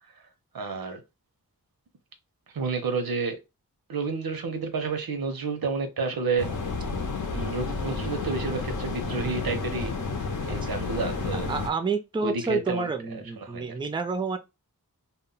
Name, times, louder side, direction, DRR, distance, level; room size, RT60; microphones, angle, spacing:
voice 1, 0.5-1.0 2.5-3.4 3.9-6.5 7.3-9.9 10.4-11.5 12.2-12.9 13.4-13.7, right 4 dB, 90° right, 0.7 m, -30 dB
sound 1, 6.4-11.7, left 4 dB, 60° left, 0.7 m, -31 dB
voice 2, 11.5-14.4, right 4 dB, 15° right, 0.4 m, -29 dB
2.1 x 2.1 x 3.7 m
wide cardioid pair, 75°, 35 cm